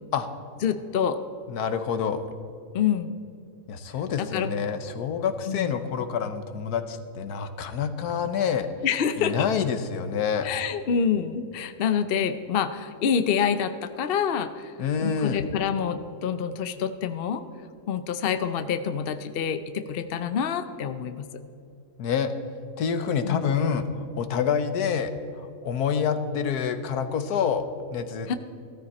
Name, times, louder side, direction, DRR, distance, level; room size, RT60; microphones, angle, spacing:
voice 1, 0.6-1.2 2.7-3.1 4.2-4.5 5.5-5.8 8.8-9.5 10.4-14.7 15.0-17.4 17.9-21.3 23.2-23.5 28.3-28.4, left 7 dB, 55° left, 10 dB, 0.6 m, -27 dB
voice 2, 1.5-2.3 3.7-8.7 9.2-10.5 14.8-15.4 22.0-22.3 22.8-28.4, left 7 dB, 70° left, 10 dB, 1.4 m, -27 dB
16.0 x 13.5 x 4.3 m, 2.5 s
omnidirectional pair, 1.7 m